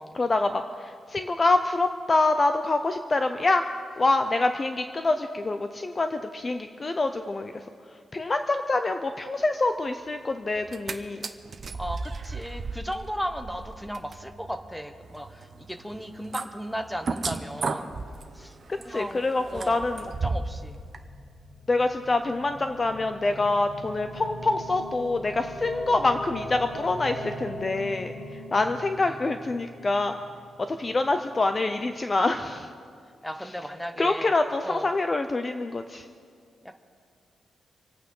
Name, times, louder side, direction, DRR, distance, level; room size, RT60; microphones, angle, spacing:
voice 1, 0.1-3.6 4.0-7.6 8.1-11.3 18.7-20.0 21.7-30.1 30.7-32.7 34.0-36.1, left 2 dB, 25° left, 7 dB, 0.5 m, -26 dB
sound 1, 10.6-10.9 11.2-20.6 20.9-21.0, right 4 dB, 35° right, 0.8 m, -35 dB
voice 2, 11.7-18.0 18.3-19.8 20.2-20.8 29.1-29.2 33.2-34.3 34.6-34.9 36.6-36.8, equal, ahead, 7 dB, 0.8 m, -36 dB
sound 2, 19.7-31.9, equal, 55° left, 2.8 m, -41 dB
26.0 x 8.9 x 5.5 m, 2.2 s
wide cardioid pair, 180°, 0 cm